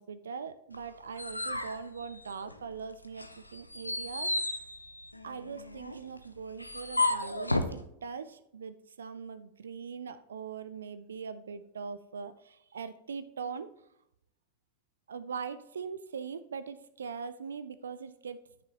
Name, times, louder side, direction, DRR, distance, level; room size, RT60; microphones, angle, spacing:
voice 1, 0.0-4.6 5.2-13.7 15.1-18.5, right 6 dB, 70° right, 13 dB, 0.3 m, -41 dB
sound 1, 0.7-2.7 3.1-7.8, left 2 dB, 85° left, 0.5 m, -33 dB
9.4 x 6.2 x 2.9 m, 0.79 s
figure-of-eight pair, 90°, 0 cm